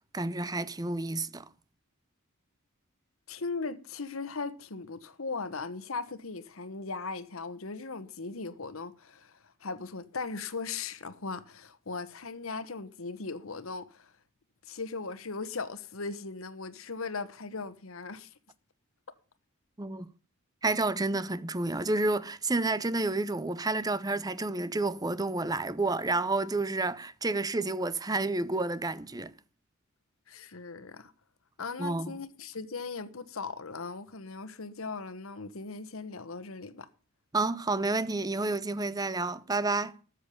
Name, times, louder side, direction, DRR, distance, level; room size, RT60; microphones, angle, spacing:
voice 1, 0.1-1.5 19.8-20.1 20.6-29.3 31.8-32.1 37.3-40.0, right 2 dB, 20° right, 0.6 m, -30 dB
voice 2, 3.3-14.1 14.6-18.3 30.3-31.1 31.6-36.9, left 4 dB, 80° left, 1.2 m, -38 dB
13.5 x 7.4 x 6.8 m
head